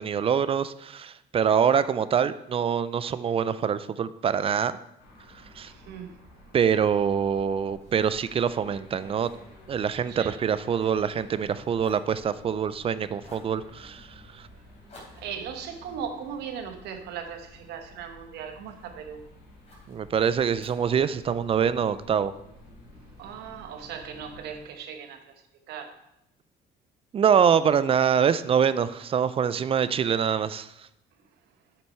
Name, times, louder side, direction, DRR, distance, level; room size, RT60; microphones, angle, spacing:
voice 1, 0.0-4.7 5.6-5.7 6.5-9.3 9.7-14.5 19.9-22.3 27.1-30.9, right 7 dB, 35° right, 15 dB, 0.4 m, -25 dB
sound 1, 5.0-24.6, left 1 dB, 80° left, 3.3 m, -51 dB
voice 2, 5.6-6.2 10.1-10.3 15.2-19.2 23.2-25.3 25.7-26.0, right 7 dB, 80° right, 6 dB, 1.0 m, -38 dB
Fire, 7.8-11.5 11.7-12.8 13.2-13.6 14.9-17.3 17.8-18.9 19.7-20.0 20.6-21.7, left 1 dB, 40° left, 3.3 m, -56 dB
8.0 x 5.9 x 4.4 m, 0.84 s
cardioid pair, 110°, 17 cm